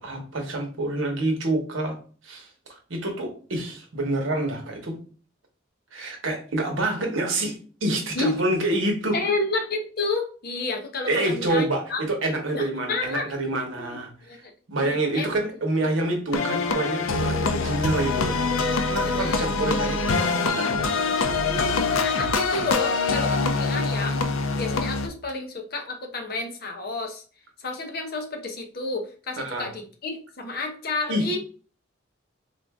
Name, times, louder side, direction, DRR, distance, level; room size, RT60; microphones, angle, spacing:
voice 1, 0.0-2.0 2.2-5.0 5.9-9.2 11.1-14.4 14.7-18.3 18.8-20.9 29.4-29.7 31.1-31.4, right 2 dB, 75° right, 3 dB, 1.0 m, -27 dB
voice 2, 9.1-11.6 11.9-12.0 12.5-13.3 13.8-14.5 14.8-15.4 15.7-15.9 19.0-19.5 20.5-20.7 21.4-24.2 24.6-27.2 27.6-31.4, left 3 dB, 50° left, 4 dB, 0.7 m, -30 dB
sound 1, 16.3-25.1, left 4 dB, 85° left, 0.5 m, -24 dB
3.7 x 2.5 x 3.5 m, 0.40 s
head